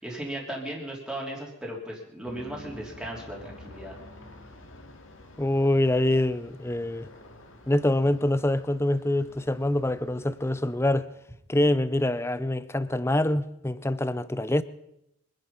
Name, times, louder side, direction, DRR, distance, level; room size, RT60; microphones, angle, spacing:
voice 1, 0.0-4.0, right 1 dB, 5° right, 3.2 m, -36 dB
Aircraft, 2.2-11.3, left 2 dB, 70° left, 2.4 m, -49 dB
voice 2, 5.4-7.1 7.7-11.1 11.5-14.6, left 1 dB, 10° left, 0.6 m, -25 dB
24.5 x 10.5 x 5.5 m
head